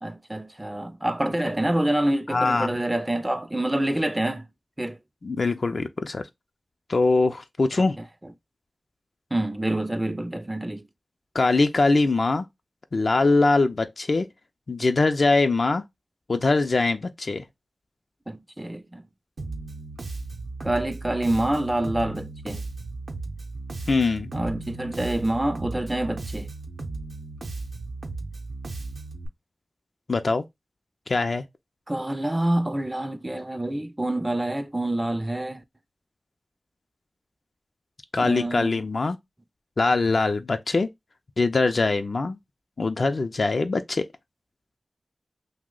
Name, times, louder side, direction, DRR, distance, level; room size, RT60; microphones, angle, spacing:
voice 1, 0.0-4.5 4.8-5.0 8.2-8.3 9.3-10.8 18.3-19.0 20.6-22.6 24.3-26.5 31.9-35.6 38.2-38.8, right 1 dB, 20° right, 0.3 m, -27 dB
voice 2, 2.3-2.7 5.2-6.2 6.9-8.0 11.3-12.4 12.9-14.3 14.7-15.8 16.3-17.4 23.9-24.3 30.1-30.4 31.1-31.4 38.1-39.2 39.8-40.9 41.4-42.4 42.8-44.0, left 3 dB, 65° left, 0.3 m, -22 dB
Bass guitar, 19.4-29.3, right 3 dB, 85° right, 0.6 m, -36 dB
2.7 x 2.0 x 3.7 m
wide cardioid pair, 65°, 0 cm